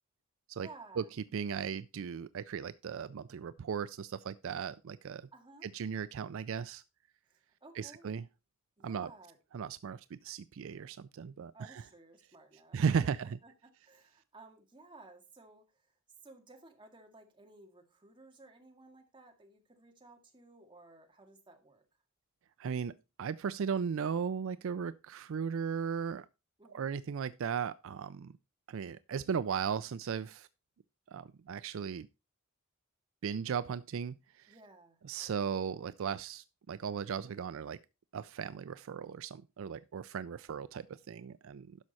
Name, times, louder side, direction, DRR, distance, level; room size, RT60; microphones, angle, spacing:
voice 1, 0.6-1.1 5.3-5.7 7.3-8.1 8.8-9.4 11.5-13.5 13.8-15.9 16.2-21.8 26.6-26.9 34.5-35.0, right 2 dB, 25° right, 2.0 m, -56 dB
voice 2, 1.3-5.3 5.6-6.8 7.8-8.2 8.8-9.1 9.5-11.8 12.7-13.4 22.6-26.3 26.7-28.3 28.7-30.5 31.1-32.1 33.2-34.5 35.1-37.8 38.1-41.8, right 6 dB, 65° right, 0.4 m, -36 dB
10.5 x 6.4 x 4.2 m
head